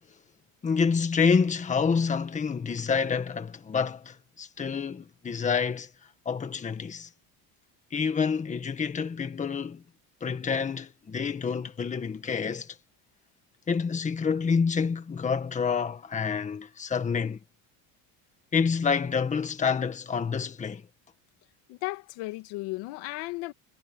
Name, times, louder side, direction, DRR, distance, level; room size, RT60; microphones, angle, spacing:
voice 1, 0.6-5.9 6.2-7.1 7.9-9.8 10.2-12.8 13.7-17.4 18.5-20.9, left 5 dB, 15° left, 1.6 m, -28 dB
voice 2, 21.7-23.5, left 21 dB, 80° left, 2.2 m, -35 dB
cardioid pair, 165°, 42 cm